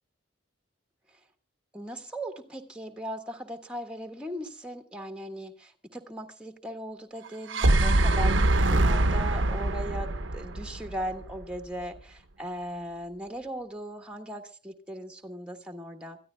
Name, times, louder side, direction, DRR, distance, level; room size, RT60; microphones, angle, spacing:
voice 1, 1.7-16.2, right 1 dB, 5° right, 5 dB, 1.5 m, -38 dB
sound 1, 7.3-11.4, right 2 dB, 75° right, 1.0 m, -24 dB
27.0 x 14.0 x 2.3 m, 0.36 s
head